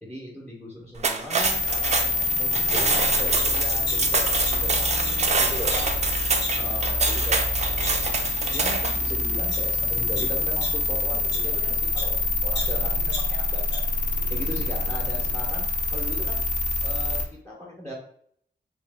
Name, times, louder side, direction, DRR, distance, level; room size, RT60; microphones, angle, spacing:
voice 1, 0.0-4.2 4.6-5.9 6.6-13.9 14.3-16.4 16.8-17.9, equal, 10° left, -4 dB, 0.9 m, -38 dB
sound 1, 1.0-9.1, right 4 dB, 40° right, 0.4 m, -26 dB
sound 2, 1.4-17.2, left 2 dB, 40° left, 0.7 m, -26 dB
sound 3, 3.4-3.5 3.9-4.8 5.0-5.1 5.7-5.8 6.4-6.5 7.0-7.1 7.6-7.9 8.5-8.6 9.3-9.6 10.2-12.1 12.5-13.8 14.2-14.3, left 1 dB, 70° left, 1.5 m, -36 dB
3.3 x 3.1 x 3.5 m, 0.66 s
wide cardioid pair, 180°, 18 cm